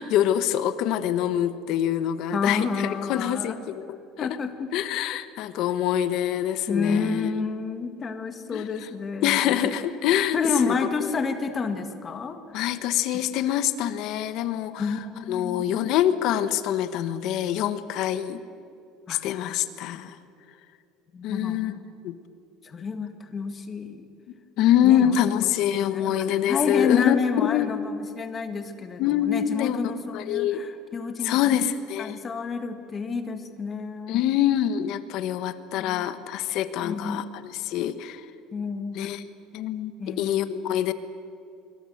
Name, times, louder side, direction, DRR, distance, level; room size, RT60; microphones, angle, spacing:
voice 1, 0.0-4.3 4.7-7.4 8.5-8.9 9.2-10.4 10.7-10.8 11.0-11.1 12.5-15.0 15.3-18.4 19.1-20.2 21.2-21.7 22.0-22.2 24.6-27.8 29.0-29.8 30.1-30.7 31.2-32.2 34.1-38.2 38.9-39.2 39.5-40.9, left 11 dB, 55° left, 12 dB, 1.2 m, -25 dB
voice 2, 2.3-3.6 4.2-4.7 6.7-9.8 10.3-12.7 13.1-13.2 14.8-15.9 19.1-19.2 19.9-20.0 21.1-21.8 22.6-24.1 24.8-25.5 25.9-31.5 32.0-34.3 35.8-36.1 36.8-37.3 38.5-39.0 40.0-40.6, left 5 dB, 25° left, 7 dB, 1.9 m, -30 dB
26.5 x 23.5 x 8.0 m, 2.5 s
cardioid pair, 165°, 0 cm